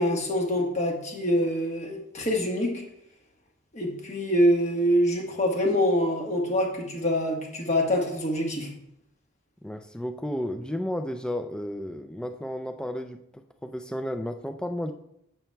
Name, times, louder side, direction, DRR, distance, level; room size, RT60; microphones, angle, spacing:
voice 1, 0.0-2.8 3.7-8.7, equal, 35° left, 0 dB, 1.4 m, -25 dB
voice 2, 9.6-14.9, equal, 5° left, 7 dB, 0.3 m, -33 dB
8.9 x 7.2 x 2.3 m, 0.78 s
head